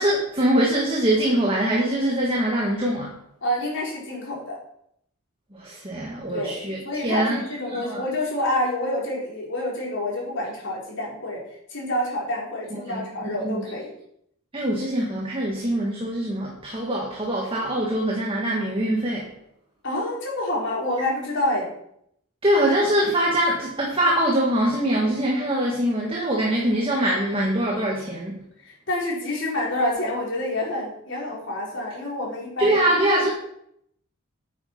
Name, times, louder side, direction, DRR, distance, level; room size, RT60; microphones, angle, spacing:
voice 1, 0.0-3.1 5.5-6.8 7.0-8.0 12.7-13.6 14.5-19.3 22.4-28.4 32.6-33.3, right 1 dB, 25° right, -2 dB, 1.9 m, -23 dB
voice 2, 3.4-4.6 6.3-6.6 6.8-11.4 11.7-13.9 19.8-21.7 28.6-32.9, left 1 dB, 60° left, -3 dB, 4.5 m, -27 dB
9.7 x 8.1 x 6.0 m, 0.72 s
head